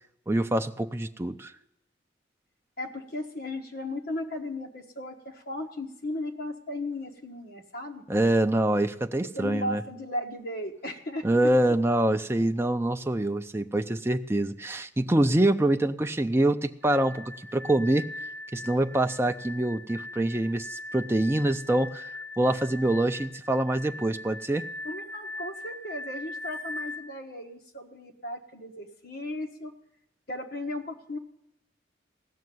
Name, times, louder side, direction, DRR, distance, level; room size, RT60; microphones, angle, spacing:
voice 1, 0.3-1.5 8.1-9.8 11.2-18.1 18.5-24.6, right 1 dB, 15° right, 7 dB, 0.4 m, -25 dB
voice 2, 2.8-8.0 9.3-11.3 24.8-29.7 30.3-31.2, left 1 dB, 50° left, 3 dB, 1.4 m, -36 dB
sound 1, 16.8-27.0, left 2 dB, 50° right, 0.9 m, -40 dB
16.0 x 6.5 x 9.3 m, 0.82 s
head